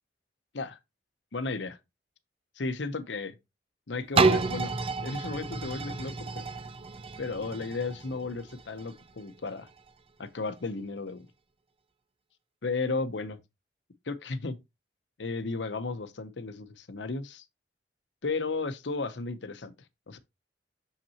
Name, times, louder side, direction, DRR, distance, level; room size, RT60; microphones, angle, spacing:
voice 1, 1.3-1.8 2.6-3.3 3.9-4.7 5.0-6.4 7.2-9.7 10.2-11.3 12.6-13.4 14.1-14.6 15.2-17.4 18.2-19.7 20.1-20.2, left 3 dB, 90° left, 0.8 m, -34 dB
sound 1, 4.2-9.9 10.5-10.6, right 4 dB, 30° right, 0.5 m, -30 dB
6.6 x 5.8 x 2.9 m
head